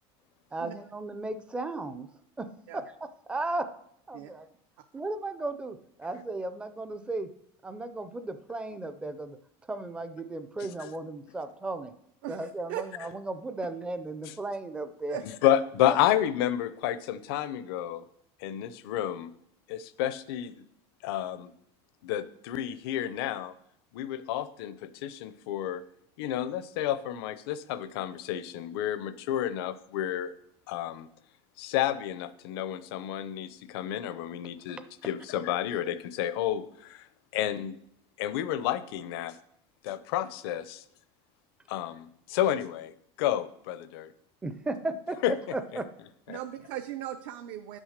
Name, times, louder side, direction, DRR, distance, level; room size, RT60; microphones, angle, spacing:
voice 1, 0.5-2.1 2.4-2.5 2.7-3.7 4.1-4.5 4.9-7.3 7.6-9.4 9.7-11.9 12.3-15.2 44.4-45.2 45.5-45.9, right 2 dB, 10° right, 11 dB, 0.4 m, -35 dB
voice 2, 10.6-10.9 14.2-14.3 15.2-18.0 18.4-19.3 19.7-20.6 21.0-21.5 22.0-23.5 23.9-25.8 26.2-30.3 30.7-31.1 31.6-37.1 37.3-37.8 38.2-39.4 39.8-40.8 41.7-44.1 45.2-45.3 46.3-46.4, left 11 dB, 75° left, 15 dB, 0.7 m, -30 dB
voice 3, 12.2-12.8 15.1-15.2 46.3-47.8, right 12 dB, 60° right, 7 dB, 0.6 m, -38 dB
11.0 x 6.3 x 6.6 m, 0.72 s
cardioid pair, 175°, 13 cm